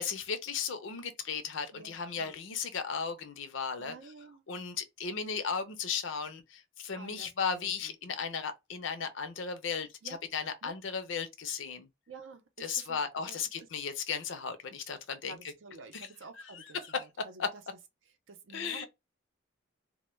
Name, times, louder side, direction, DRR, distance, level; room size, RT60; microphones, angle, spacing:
voice 1, 0.0-3.9 4.5-11.9 12.6-15.4 15.9-16.1 16.4-17.0 17.4-17.5 18.5-18.9, left 6 dB, 65° left, 0.5 m, -36 dB
voice 2, 1.7-2.4 3.8-4.4 7.0-7.9 10.0-10.2 10.6-10.8 12.1-13.7 15.2-17.6 18.3-18.9, right 4 dB, 70° right, 0.5 m, -51 dB
2.1 x 2.1 x 3.1 m
head